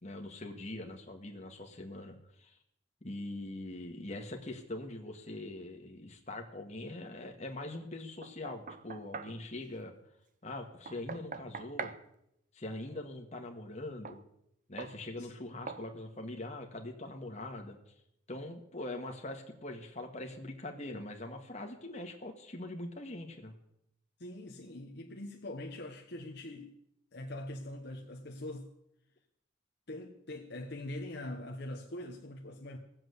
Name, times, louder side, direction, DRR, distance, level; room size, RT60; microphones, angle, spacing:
voice 1, 0.0-2.5 3.0-9.9 10.4-11.9 12.5-14.2 14.7-17.8 18.3-23.5, left 2 dB, 35° left, 1.7 m, -42 dB
Knock, 8.2-9.4 10.9-12.0 14.0-14.2 14.8-15.0 15.7-15.9, right 4 dB, 40° right, 0.6 m, -42 dB
voice 2, 24.2-26.7 27.1-28.7 29.9-32.8, left 1 dB, 55° left, 1.1 m, -43 dB
17.0 x 7.7 x 8.1 m
head